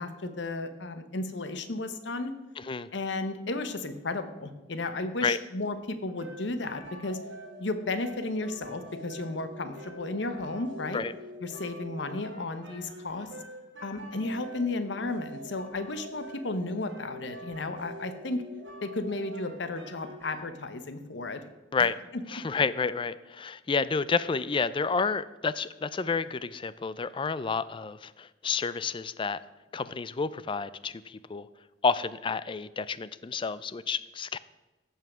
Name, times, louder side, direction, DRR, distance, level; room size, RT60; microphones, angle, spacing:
voice 1, 0.0-2.3 2.9-7.2 7.6-11.0 11.4-13.3 13.8-18.4 18.8-21.4 22.1-22.4, left 2 dB, 70° left, 10 dB, 0.9 m, -34 dB
voice 2, 2.6-2.9 5.2-5.4 10.9-11.1 21.7-22.0 22.3-29.4 29.7-31.5 31.8-34.4, left 5 dB, 25° left, 17 dB, 0.4 m, -30 dB
sound 1, 6.2-20.4, equal, 80° right, 2.3 m, -45 dB
15.0 x 5.6 x 6.2 m, 1.1 s
head